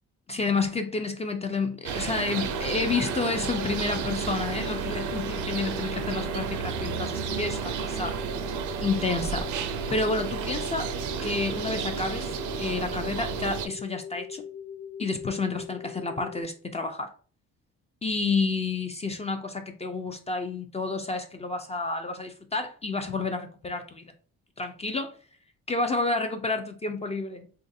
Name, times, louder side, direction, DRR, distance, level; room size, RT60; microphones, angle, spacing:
voice 1, 0.3-8.2 8.8-9.5 9.9-10.9 11.2-14.4 15.0-17.1 18.0-24.0 24.6-25.1 25.7-27.4, left 3 dB, 20° left, 0.3 m, -30 dB
sound 1, 1.8-13.7, right 7 dB, 75° right, 0.5 m, -32 dB
sound 2, 2.4-16.4, left 8 dB, 55° left, 1.2 m, -41 dB
3.2 x 2.4 x 2.6 m
cardioid pair, 90°, 30 cm